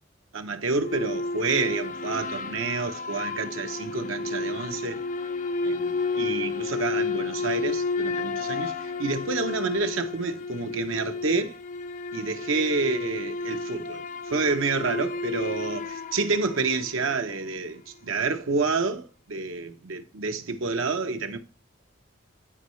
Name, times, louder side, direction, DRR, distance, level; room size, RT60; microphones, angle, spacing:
voice 1, 0.3-5.0 5.6-11.6 12.1-14.0 14.3-21.4, right 4 dB, 90° right, 0.8 m, -29 dB
sound 1, 0.7-17.3, left 3 dB, 40° left, 0.3 m, -31 dB
11.5 x 4.6 x 3.1 m
head